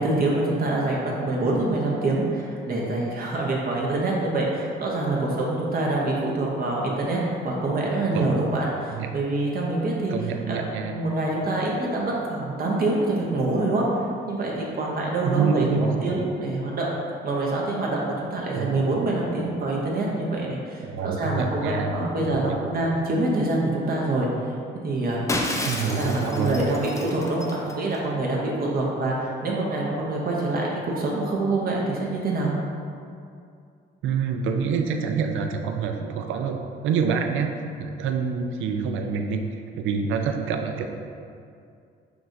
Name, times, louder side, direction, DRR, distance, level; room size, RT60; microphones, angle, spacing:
voice 1, 0.0-10.1 10.5-13.8 14.3-16.9 17.2-24.3 24.8-25.4 25.8-32.5, right 2 dB, 50° right, -3 dB, 0.7 m, -25 dB
voice 2, 10.1-11.0 15.2-16.1 18.5-18.7 20.8-21.9 22.2-22.6 25.6-26.5 34.0-36.6 36.8-39.4 39.7-40.9, right 5 dB, 80° right, 4 dB, 0.4 m, -26 dB
Shatter, 25.3-28.0, left 1 dB, 15° left, 0.4 m, -31 dB
6.0 x 2.4 x 2.6 m, 2.4 s
cardioid pair, 90°, 20 cm